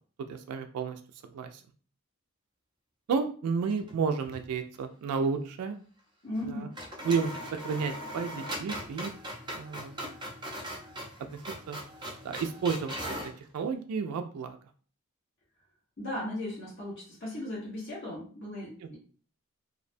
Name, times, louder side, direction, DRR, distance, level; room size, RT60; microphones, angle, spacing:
voice 1, 0.3-1.0 1.2-1.6 3.1-5.8 6.5-6.7 7.0-7.3 7.6-9.1 9.5-10.0 11.2-11.4 11.7-11.8 12.2-14.6, right 5 dB, 85° right, 10 dB, 0.3 m, -32 dB
sound 1, 3.6-4.5 4.7-4.8 6.3-6.5 6.7-13.4, equal, 20° right, 0.5 m, -40 dB
voice 2, 6.2-6.7 16.0-19.0, left 1 dB, 50° left, -6 dB, 1.0 m, -37 dB
2.5 x 2.1 x 2.5 m, 0.42 s
head